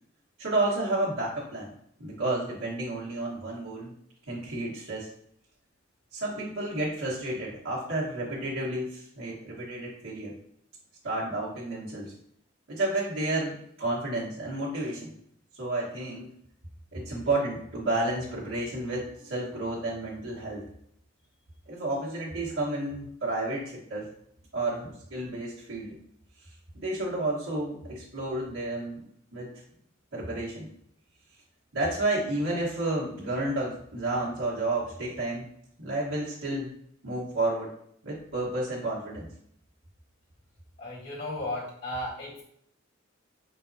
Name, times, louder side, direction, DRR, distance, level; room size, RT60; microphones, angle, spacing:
voice 1, 0.4-1.7 2.0-3.9 4.3-5.1 6.1-10.4 11.0-12.1 12.7-15.1 15.6-16.3 16.9-20.6 21.7-24.1 24.5-26.0 26.7-29.0 29.3-29.5 30.1-30.7 31.7-35.5 35.8-36.7 37.0-37.7 38.0-39.3, right 2 dB, 70° right, -8 dB, 1.4 m, -31 dB
voice 2, 40.8-42.4, left 1 dB, 60° left, -7 dB, 1.9 m, -35 dB
4.9 x 3.8 x 2.7 m, 0.70 s
head